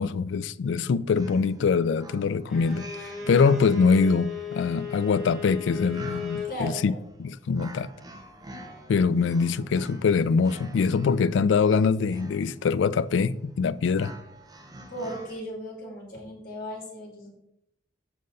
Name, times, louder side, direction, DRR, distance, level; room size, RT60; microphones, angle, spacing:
voice 1, 0.0-2.9 3.3-6.9 7.2-7.9 8.9-14.1, left 5 dB, 80° left, 0.3 m, -23 dB
sound 1, 0.8-0.9 1.1-15.4, right 1 dB, 20° right, 0.9 m, -47 dB
Bowed string instrument, 2.5-6.6, left 5 dB, ahead, 1.5 m, -36 dB
voice 2, 6.4-7.0 14.9-17.3, equal, 50° left, 2.8 m, -36 dB
7.5 x 6.5 x 4.0 m
head